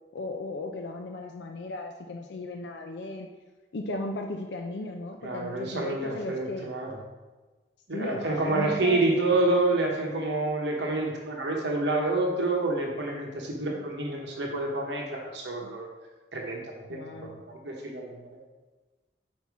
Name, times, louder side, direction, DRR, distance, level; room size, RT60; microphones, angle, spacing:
voice 1, 0.1-3.3 3.7-6.7 7.9-9.0 15.6-15.7 16.9-17.4, left 2 dB, 75° left, 4 dB, 0.4 m, -36 dB
voice 2, 5.2-6.9 7.9-15.9 16.3-16.6 16.9-18.4, right 2 dB, 75° right, -1 dB, 0.9 m, -28 dB
5.5 x 4.4 x 4.6 m, 1.2 s
head